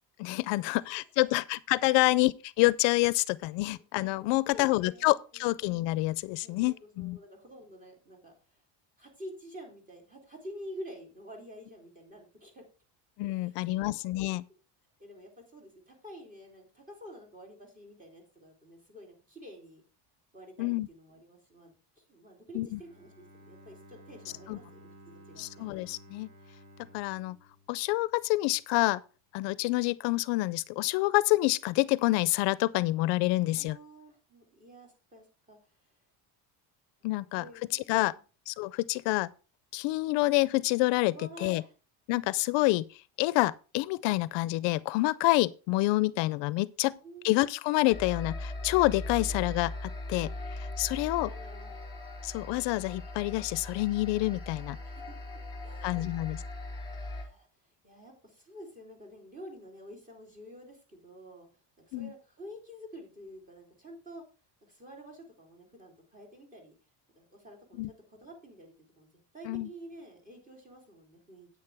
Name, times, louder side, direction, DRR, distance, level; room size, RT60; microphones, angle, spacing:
voice 1, 0.2-7.2 13.2-14.4 20.6-20.9 22.5-22.8 24.5-24.6 25.4-26.3 26.9-27.4 27.7-29.0 29.3-33.8 37.0-37.4 37.7-38.1 38.5-39.3 39.7-41.1 41.4-41.6 42.1-42.8 43.2-46.9 47.2-51.3 52.2-54.8 55.8-56.4 61.9-62.1 67.8-67.9 69.5-69.7, left 20 dB, 75° left, 0.6 m, -27 dB
voice 2, 4.5-5.7 6.4-8.6 9.0-12.7 13.3-14.3 15.0-19.8 20.3-25.7 33.4-35.7 37.2-38.2 41.1-41.7 46.8-47.3 50.9-51.9 54.8-55.1 55.6-56.2 56.9-61.5 61.8-64.2 64.6-66.7 67.2-69.1 69.3-71.5, equal, 20° right, 3.5 m, -49 dB
Bowed string instrument, 22.7-28.6, right 1 dB, 50° right, 2.3 m, -55 dB
sound 1, 47.9-57.2, left 2 dB, 10° left, 3.2 m, -39 dB
9.8 x 8.8 x 3.4 m
cardioid pair, 155°, 44 cm